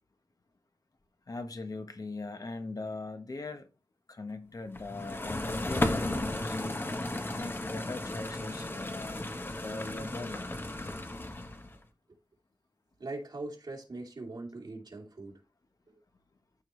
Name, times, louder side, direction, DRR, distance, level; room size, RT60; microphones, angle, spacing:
voice 1, 1.3-3.7 4.1-6.8 7.3-9.2 9.5-10.5, left 3 dB, 50° left, 1.1 m, -40 dB
sound 1, 4.8-11.8, left 1 dB, 25° left, 1.0 m, -34 dB
voice 2, 13.0-15.4, right 2 dB, 65° right, 2.7 m, -41 dB
13.0 x 4.6 x 3.1 m
wide cardioid pair, 85°, 8 cm